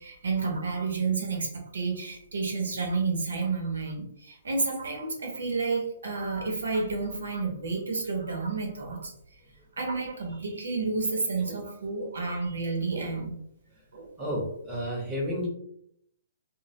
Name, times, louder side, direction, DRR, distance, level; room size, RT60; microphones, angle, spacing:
voice 1, 0.0-1.5 1.7-9.1 9.8-13.3 13.9-14.1, right 4 dB, 90° right, 1 dB, 0.8 m, -30 dB
voice 2, 14.2-15.5, equal, 10° right, -5 dB, 0.9 m, -31 dB
2.2 x 2.1 x 2.7 m, 0.70 s
hypercardioid pair, 145°, 0 cm